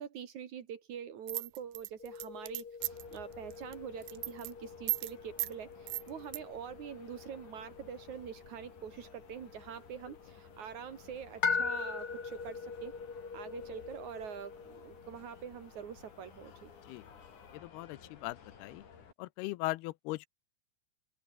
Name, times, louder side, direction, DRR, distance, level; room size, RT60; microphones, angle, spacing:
voice 1, 0.0-12.9 13.3-16.7, right 8 dB, 55° right, 2.7 m, -45 dB
sound 1, 1.3-3.1 3.5-3.7 4.0-4.5 4.9-5.1 5.4-5.5 5.9-6.4, right 19 dB, 90° right, 2.8 m, -35 dB
sound 2, 2.0-17.5, left 5 dB, 30° left, 2.4 m, -42 dB
sound 3, 2.8-19.1, left 6 dB, 55° left, 4.6 m, -56 dB
voice 2, 17.5-18.8 19.2-20.3, left 19 dB, 90° left, 2.7 m, -39 dB
open air
omnidirectional pair, 4.5 m